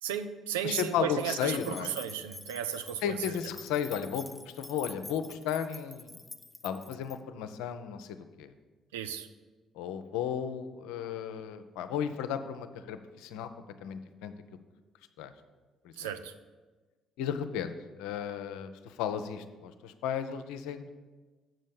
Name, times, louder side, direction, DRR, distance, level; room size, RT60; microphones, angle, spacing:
voice 1, 0.0-3.2 8.9-9.3 16.0-16.3, right 9 dB, 75° right, 9 dB, 0.4 m, -34 dB
voice 2, 0.6-1.9 3.0-6.2 6.6-8.5 9.7-13.5 13.8-14.3 15.2-15.3 16.0-16.1 17.2-17.7 18.0-20.9, left 8 dB, 70° left, 9 dB, 0.5 m, -34 dB
sound 1, 1.4-7.2, left 2 dB, 20° left, 0.4 m, -47 dB
7.7 x 6.3 x 6.9 m, 1.3 s
figure-of-eight pair, 45°, 0 cm